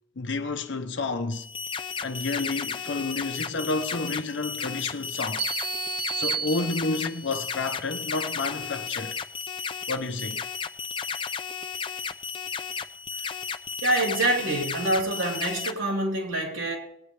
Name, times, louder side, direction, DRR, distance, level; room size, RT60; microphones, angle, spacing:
voice 1, 0.2-1.5 2.0-5.5 6.1-9.2 9.9-10.4, left 3 dB, 60° left, 0.7 m, -30 dB
sound 1, 1.3-15.7, left 6 dB, 25° left, 0.4 m, -34 dB
sound 2, 5.4-7.3, right 6 dB, 60° right, 0.9 m, -32 dB
voice 2, 13.8-16.8, right 1 dB, 85° right, 3.4 m, -26 dB
19.5 x 9.7 x 3.3 m
head